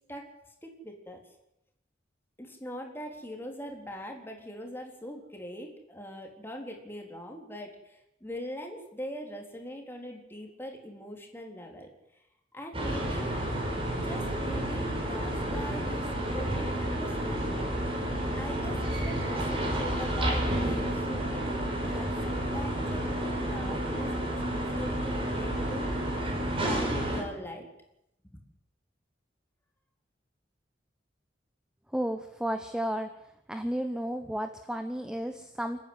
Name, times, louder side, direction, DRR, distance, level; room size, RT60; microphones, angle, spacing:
voice 1, 0.6-1.2 2.4-11.9 12.5-13.4 14.0-17.7 18.3-26.2 26.5-27.7 28.2-28.4, equal, 15° left, 1 dB, 3.8 m, -42 dB
sound 1, 12.7-27.2, right 1 dB, 30° right, 5.2 m, -30 dB
voice 2, 31.9-33.1 33.5-35.8, equal, 5° right, 7 dB, 1.0 m, -32 dB
28.5 x 10.0 x 9.7 m, 0.83 s
head